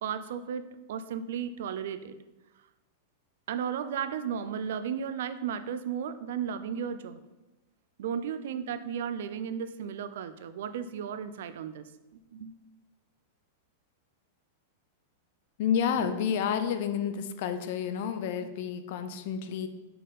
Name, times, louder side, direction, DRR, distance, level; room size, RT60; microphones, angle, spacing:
voice 1, 0.0-2.1 3.5-7.2 8.0-11.8 12.3-12.5, right 8 dB, 70° right, 13 dB, 0.5 m, -34 dB
voice 2, 15.6-19.7, left 8 dB, 55° left, 9 dB, 0.7 m, -30 dB
7.5 x 5.5 x 4.1 m, 1.1 s
supercardioid pair, 155°, 0 cm